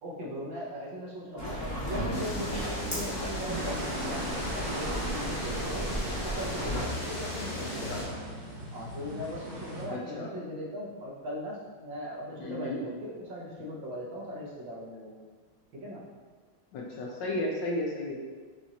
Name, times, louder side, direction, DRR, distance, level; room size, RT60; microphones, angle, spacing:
voice 1, 0.0-5.9 6.2-8.2 8.7-15.1 15.7-16.0, equal, 70° right, -4 dB, 1.5 m, -39 dB
sound 1, 1.4-6.8, right 1 dB, 10° left, 0.9 m, -35 dB
sound 2, 2.1-8.0, left 1 dB, 40° left, 1.4 m, -37 dB
sound 3, 3.5-9.8, right 1 dB, 50° right, 1.5 m, -39 dB
voice 2, 7.6-8.0 9.9-10.3 12.4-12.8 16.7-18.2, left 1 dB, 75° left, -2 dB, 1.1 m, -34 dB
6.9 x 2.8 x 2.4 m, 1.4 s
omnidirectional pair, 2.2 m